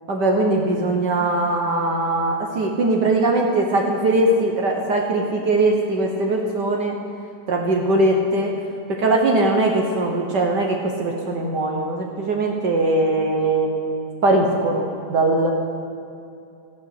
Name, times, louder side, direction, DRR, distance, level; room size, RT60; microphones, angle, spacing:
voice 1, 0.1-6.9 7.5-8.5 8.9-13.7 14.2-14.8 15.1-15.5, right 2 dB, 65° right, 1 dB, 1.0 m, -20 dB
14.5 x 10.5 x 6.8 m, 2.6 s
omnidirectional pair, 3.5 m